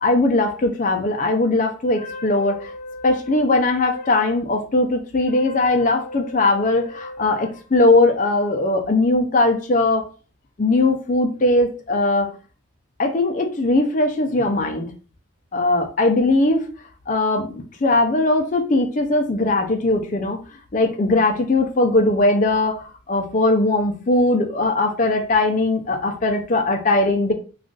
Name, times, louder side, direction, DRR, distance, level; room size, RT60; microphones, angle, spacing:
voice 1, 0.0-10.1 10.6-12.3 13.0-14.9 15.5-16.6 17.1-20.4 20.7-27.3, left 2 dB, 40° left, 4 dB, 0.5 m, -19 dB
2.4 x 2.4 x 3.7 m, 0.37 s
head